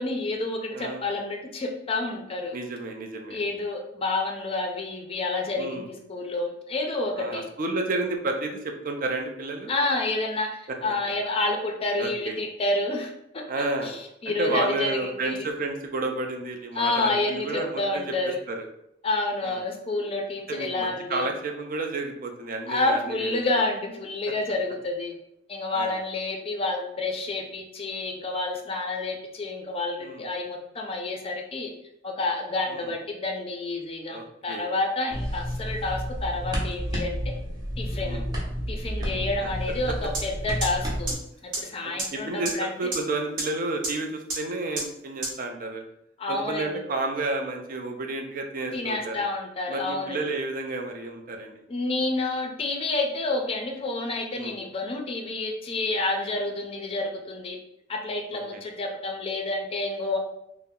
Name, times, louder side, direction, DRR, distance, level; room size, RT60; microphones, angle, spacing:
voice 1, 0.0-2.6 3.3-7.5 9.7-15.5 16.7-18.4 19.0-21.3 22.7-25.1 25.5-31.7 32.0-37.2 37.8-38.2 38.7-41.2 41.4-42.9 46.2-46.8 48.7-50.2 51.7-57.6 57.9-60.2, left 2 dB, 30° left, 2 dB, 0.4 m, -29 dB
voice 2, 0.7-1.0 2.5-3.4 5.6-5.9 7.2-9.7 12.0-12.4 13.5-14.0 14.3-18.0 18.5-18.6 19.4-19.6 20.5-23.3 25.7-26.0 30.0-30.3 32.7-32.9 34.1-34.7 38.0-38.2 39.1-39.5 41.8-45.8 46.3-49.2 49.7-51.6 54.4-54.6 58.5-58.6, right 2 dB, 50° right, 4 dB, 0.4 m, -31 dB
sound 1, 35.1-41.1, equal, 20° right, 0.7 m, -31 dB
sound 2, 40.1-40.2 40.6-40.7 41.1-41.2 41.5-41.6 42.0-42.1 42.5-42.6 42.9-43.0 43.4-43.5 43.8-43.9 44.3-44.4 44.8-44.9 45.2-45.3, right 2 dB, 75° right, 1.0 m, -28 dB
2.7 x 2.0 x 3.6 m, 0.79 s
head